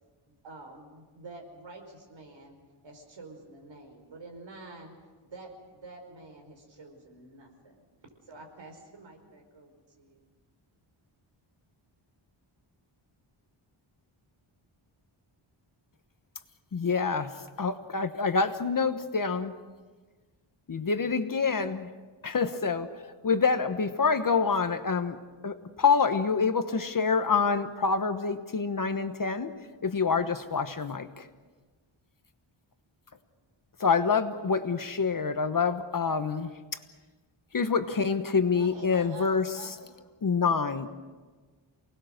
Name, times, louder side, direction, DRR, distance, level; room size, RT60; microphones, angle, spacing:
voice 1, 0.2-2.6 2.8-4.9 5.2-7.8 8.2-10.2, right 2 dB, 65° right, 3 dB, 5.0 m, -48 dB
voice 2, 16.7-17.3 17.6-19.5 20.7-21.9 22.2-22.9 23.2-25.2 25.4-29.5 29.8-31.3 33.8-36.5 37.5-39.5 40.2-40.9, left 5 dB, 45° left, 9 dB, 1.1 m, -26 dB
voice 3, 38.5-39.9, right 3 dB, 45° right, 2 dB, 5.6 m, -46 dB
28.5 x 19.5 x 6.5 m, 1.4 s
wide cardioid pair, 140°, 48 cm